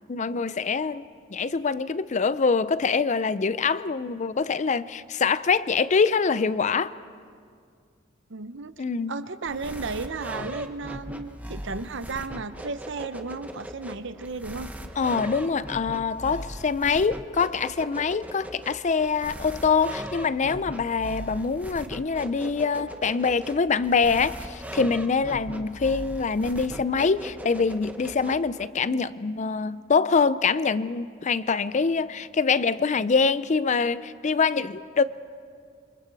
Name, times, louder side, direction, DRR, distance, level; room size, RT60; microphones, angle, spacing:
voice 1, 0.1-1.1 1.3-6.9 8.8-9.2 15.0-35.0, left 5 dB, 35° left, 0.5 m, -24 dB
voice 2, 8.3-14.7, right 4 dB, 60° right, 0.8 m, -34 dB
sound 1, 9.5-28.7, right 1 dB, 5° right, 0.9 m, -39 dB
28.0 x 24.5 x 4.7 m
head